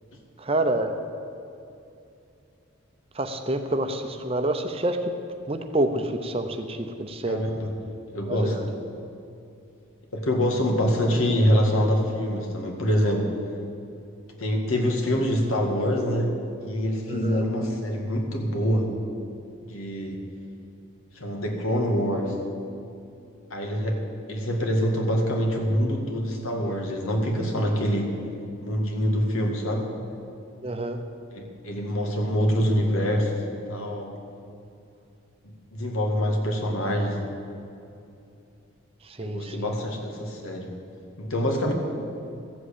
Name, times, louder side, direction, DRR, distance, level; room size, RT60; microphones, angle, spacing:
voice 1, 0.4-0.9 3.2-5.0 5.5-7.4 8.3-8.7 17.1-17.4 30.6-31.0 39.2-39.6, right 1 dB, 25° right, 7 dB, 0.7 m, -27 dB
voice 2, 7.3-7.7 8.1-8.7 10.1-13.3 14.4-16.3 16.6-18.9 19.7-20.2 21.2-22.4 23.5-24.0 24.3-28.1 28.6-29.9 31.3-33.4 33.7-34.1 35.4-37.2 39.2-40.7 41.2-41.7, equal, 80° left, 2 dB, 2.0 m, -25 dB
14.5 x 7.8 x 8.5 m, 2.6 s
head